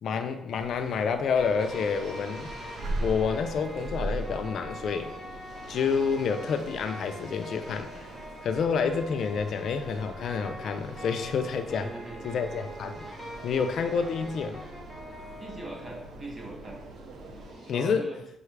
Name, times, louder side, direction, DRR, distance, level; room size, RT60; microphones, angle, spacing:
voice 1, 0.0-2.5 3.0-5.1 5.7-7.9 8.4-11.9 12.2-13.1 13.4-14.6 17.7-18.1, left 6 dB, 65° left, 8 dB, 0.4 m, -28 dB
sound 1, 0.5-17.5, right 2 dB, 80° right, 0.5 m, -42 dB
sound 2, 1.4-16.1, equal, 5° right, 1.2 m, -44 dB
sound 3, 1.6-17.7, right 1 dB, 55° right, 1.3 m, -50 dB
voice 2, 11.7-12.2 15.4-16.8 17.7-18.2, right 2 dB, 30° right, -1 dB, 1.0 m, -40 dB
5.5 x 2.3 x 3.2 m, 0.85 s
cardioid pair, 90°, 0 cm